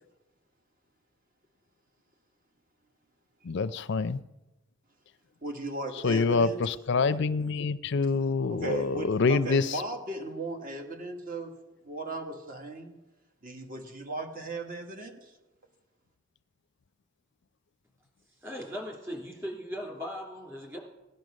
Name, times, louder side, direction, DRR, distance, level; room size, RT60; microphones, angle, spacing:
voice 1, 3.4-4.2 6.0-9.8, left 4 dB, 60° left, 0.5 m, -26 dB
voice 2, 5.4-6.7 8.5-11.5 11.8-12.9 13.4-15.3, right 2 dB, 45° right, 1.8 m, -36 dB
voice 3, 18.4-20.8, equal, 15° right, 3.0 m, -38 dB
16.5 x 10.5 x 6.4 m
head